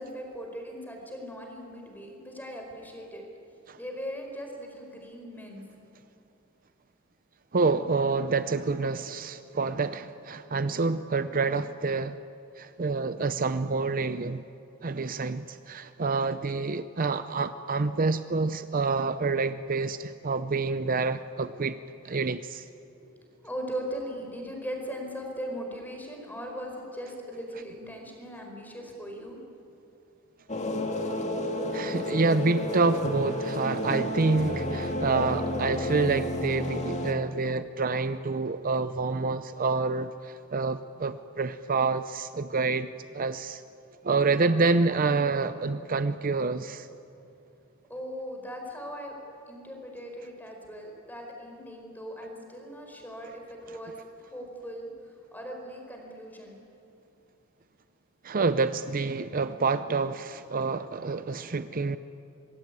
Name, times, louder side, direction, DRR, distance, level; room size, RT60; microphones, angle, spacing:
voice 1, 0.0-3.2 3.8-5.6 23.0-23.1 23.4-29.4 47.9-49.1 49.5-53.9 54.2-54.9 55.3-56.6, equal, 10° left, 2 dB, 5.0 m, -39 dB
voice 2, 7.5-12.2 12.6-14.4 14.8-21.8 22.0-22.7 31.7-42.9 43.1-43.6 44.0-46.9 58.2-62.0, right 3 dB, 45° right, 12 dB, 0.6 m, -27 dB
sound 1, 30.5-37.1, left 1 dB, 35° left, 2.1 m, -31 dB
25.0 x 21.0 x 9.4 m, 2.7 s
head